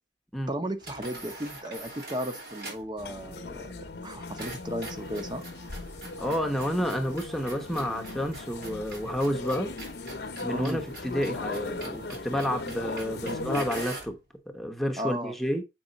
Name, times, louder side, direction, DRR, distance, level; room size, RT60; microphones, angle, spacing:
voice 1, 0.5-5.4 10.5-10.8 13.2-13.6 15.0-15.3, equal, 25° right, 1.0 m, -35 dB
sound 1, 0.8-3.0 4.4-14.2, right 2 dB, 65° right, 3.9 m, -44 dB
sound 2, 3.0-13.9, left 3 dB, 65° left, 0.8 m, -38 dB
voice 2, 6.2-9.8 10.4-14.2 14.5-15.6, equal, ahead, 0.9 m, -30 dB
7.8 x 4.9 x 3.9 m
head